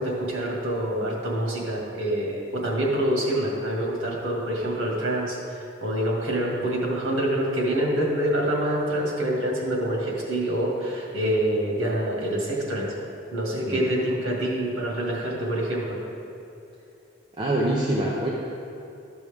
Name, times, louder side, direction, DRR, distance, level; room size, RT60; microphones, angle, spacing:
voice 1, 0.0-12.9 13.3-16.0, right 1 dB, 90° right, -3 dB, 2.0 m, -26 dB
voice 2, 17.4-18.3, right 1 dB, 25° right, -5 dB, 0.7 m, -24 dB
12.5 x 6.1 x 3.5 m, 2.7 s
head